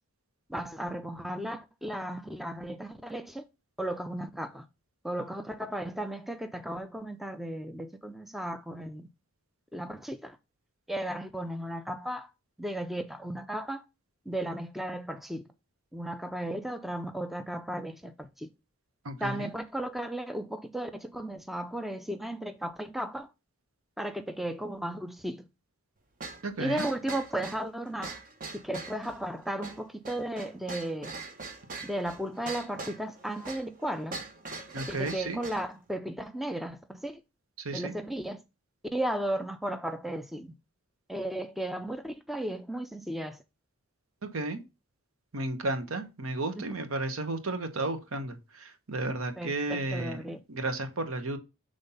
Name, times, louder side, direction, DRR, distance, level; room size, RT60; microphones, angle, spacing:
voice 1, 0.5-3.4 3.8-4.7 5.0-9.1 9.7-10.4 10.9-12.3 12.6-13.8 14.3-15.5 15.9-18.5 19.2-23.3 24.0-25.5 26.6-28.2 28.5-31.1 31.8-34.2 34.9-37.2 37.7-38.4 38.9-40.5 41.1-43.4 46.6-46.7 49.4-50.4, right 1 dB, ahead, 0.4 m, -35 dB
voice 2, 19.0-19.5 26.4-26.8 34.7-35.4 37.6-37.9 44.2-44.6 45.3-50.2 50.5-51.4, right 2 dB, 85° right, 1.0 m, -33 dB
sound 1, 26.2-35.7, right 3 dB, 40° right, 0.8 m, -42 dB
5.5 x 3.5 x 5.4 m
head